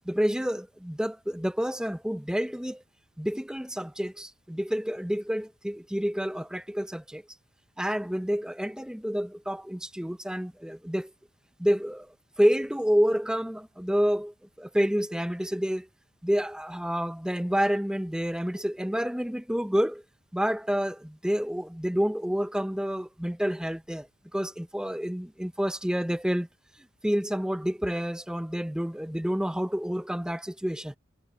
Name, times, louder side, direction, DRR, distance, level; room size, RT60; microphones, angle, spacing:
voice 1, 0.1-2.8 3.2-7.2 7.8-11.1 11.6-12.1 12.4-15.9 16.2-20.0 20.3-24.1 24.3-26.5 27.0-30.9, equal, 5° right, 0.6 m, -28 dB
head